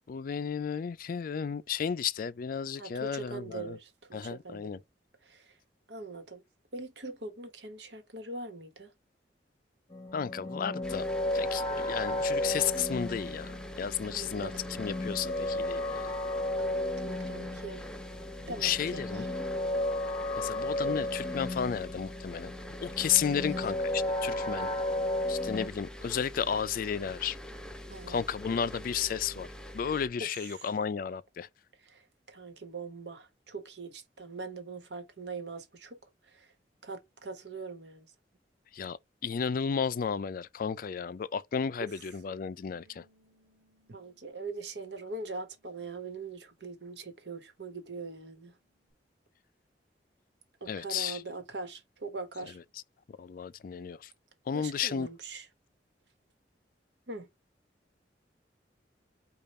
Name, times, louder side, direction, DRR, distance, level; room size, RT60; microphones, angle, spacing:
voice 1, 0.1-3.8 4.1-4.8 10.1-11.1 11.3-14.5 14.8-16.1 18.4-19.3 20.4-22.5 22.8-24.7 25.3-27.4 28.1-29.5 29.7-31.5 38.7-39.0 39.2-43.0 50.7-51.2 53.1-54.1 54.5-55.1, left 7 dB, 50° left, 0.3 m, -33 dB
voice 2, 2.8-4.8 5.2-5.6 5.9-6.4 6.7-8.9 14.1-14.6 16.6-17.8 18.5-19.3 20.8-21.0 23.3-23.7 27.9-28.3 30.2-30.7 31.8-36.5 36.8-38.1 41.8-41.9 43.9-48.6 50.6-52.6 54.5-55.5 57.1-57.3, right 3 dB, 75° right, 1.2 m, -42 dB
sound 1, 9.9-25.7, left 1 dB, 25° left, 0.9 m, -34 dB
sound 2, 10.8-30.1, equal, 5° left, 0.5 m, -45 dB
Bass guitar, 42.7-48.9, left 1 dB, 10° right, 2.7 m, -73 dB
5.2 x 2.4 x 4.2 m
head